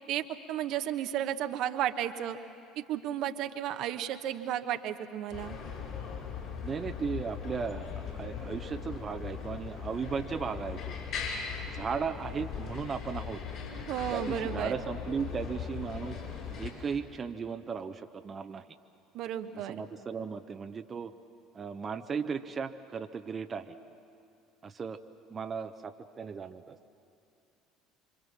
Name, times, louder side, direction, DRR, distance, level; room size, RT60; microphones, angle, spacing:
voice 1, 0.1-2.4 2.8-5.6 13.9-14.8 19.1-19.8, right 11 dB, 60° right, 8 dB, 1.1 m, -33 dB
sound 1, 5.3-16.7, left 6 dB, 55° left, 6.7 m, -39 dB
voice 2, 6.6-11.0 11.7-13.4 14.1-16.2 16.6-18.6 19.7-21.1 21.5-23.8 24.6-25.0 25.3-26.8, right 6 dB, 35° right, 8 dB, 0.9 m, -36 dB
26.5 x 25.0 x 7.4 m, 2.5 s
hypercardioid pair, 65°, 0 cm